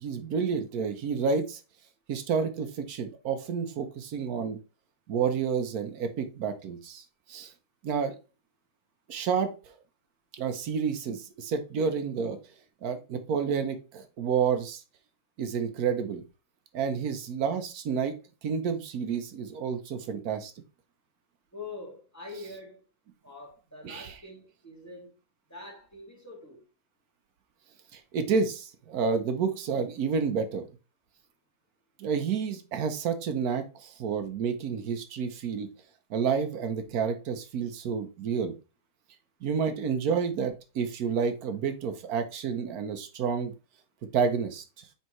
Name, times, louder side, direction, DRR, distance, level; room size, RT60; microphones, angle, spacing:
voice 1, 0.0-1.6 2.1-4.6 5.1-7.0 7.3-7.5 7.8-8.1 9.1-9.5 10.3-12.4 12.8-14.8 15.4-16.2 16.7-18.1 18.4-20.5 23.8-24.1 27.9-30.7 32.0-35.7 36.1-38.5 39.4-43.5 44.1-44.6, right 6 dB, 80° right, 1.3 m, -29 dB
voice 2, 21.5-22.8 23.2-25.1 25.5-26.6, left 2 dB, 10° left, 2.3 m, -44 dB
7.0 x 4.6 x 3.0 m
omnidirectional pair, 1.5 m